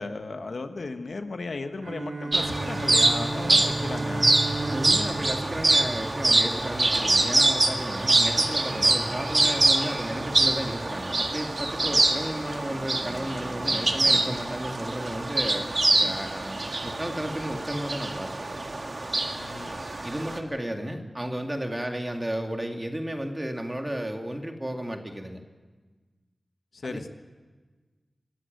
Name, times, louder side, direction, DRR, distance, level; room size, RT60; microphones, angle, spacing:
voice 1, 0.0-4.3 8.0-8.2 8.7-8.8 19.4-19.8 26.7-27.1, left 3 dB, 70° left, 7 dB, 1.3 m, -36 dB
Bowed string instrument, 1.8-6.7, right 3 dB, 85° right, 2.3 m, -35 dB
sound 1, 2.3-20.4, right 2 dB, 45° right, 2.0 m, -25 dB
voice 2, 4.7-15.7 15.9-18.5 20.0-25.4 26.8-27.0, right 1 dB, 20° right, 4 dB, 2.4 m, -33 dB
25.0 x 13.0 x 9.3 m, 1.3 s
wide cardioid pair, 65°, 0 cm